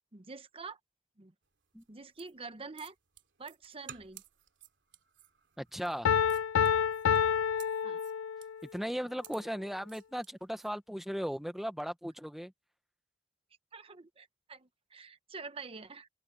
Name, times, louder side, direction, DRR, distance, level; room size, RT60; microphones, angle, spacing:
voice 1, 0.1-0.8 1.2-1.3 1.9-2.9 3.4-4.2 7.8-8.0 13.7-16.1, right 4 dB, 30° right, 0.9 m, -46 dB
sound 1, 1.7-10.7, right 10 dB, 65° right, 3.5 m, -56 dB
voice 2, 5.6-6.1 8.7-12.5, equal, ahead, 0.9 m, -37 dB
Piano, 6.0-8.6, left 8 dB, 80° left, 0.3 m, -28 dB
open air
head